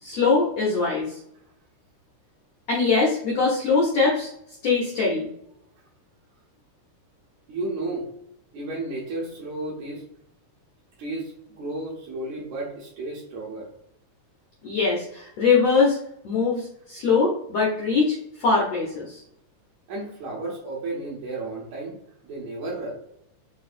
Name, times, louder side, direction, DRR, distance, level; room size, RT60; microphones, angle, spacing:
voice 1, 0.0-1.2 2.7-4.3 4.6-5.3 14.6-16.0 16.2-19.2, left 4 dB, 80° left, -4 dB, 1.4 m, -22 dB
voice 2, 7.5-8.1 8.5-10.0 11.0-13.7 19.9-22.0 22.2-22.9, right 2 dB, 70° right, -3 dB, 1.8 m, -33 dB
6.2 x 2.6 x 2.5 m, 0.74 s
omnidirectional pair, 4.1 m